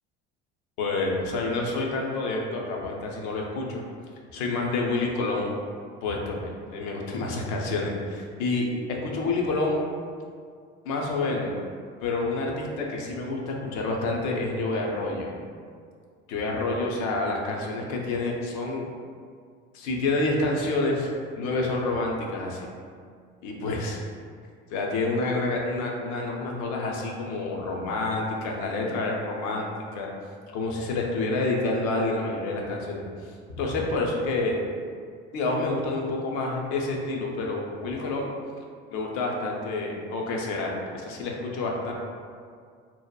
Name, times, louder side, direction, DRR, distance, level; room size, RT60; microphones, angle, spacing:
voice 1, 0.8-3.8 4.3-5.5 6.0-9.8 10.8-11.6 12.0-15.3 16.3-18.9 19.7-21.1 21.4-22.7 23.4-24.0 24.7-29.7 29.9-30.1 30.5-33.3 33.6-34.6 35.3-38.3 38.9-41.9, left 2 dB, 65° left, -1 dB, 0.6 m, -28 dB
2.8 x 2.1 x 2.2 m, 2.1 s
hypercardioid pair, 75°, 30 cm